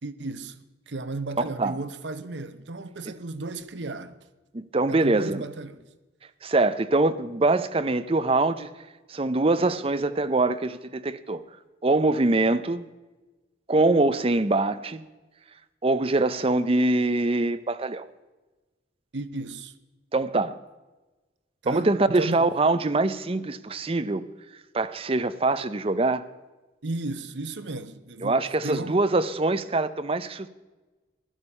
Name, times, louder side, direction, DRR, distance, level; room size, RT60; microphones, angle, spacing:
voice 1, 0.0-4.2 4.9-5.8 19.1-19.7 21.6-22.5 26.8-29.0, right 2 dB, 90° right, 0.9 m, -34 dB
voice 2, 4.5-5.4 6.4-8.7 9.1-11.4 11.8-12.9 13.7-15.1 15.8-18.1 20.1-20.6 21.7-24.2 24.7-26.2 28.2-30.5, right 2 dB, 30° right, 0.6 m, -23 dB
15.5 x 11.5 x 5.5 m
head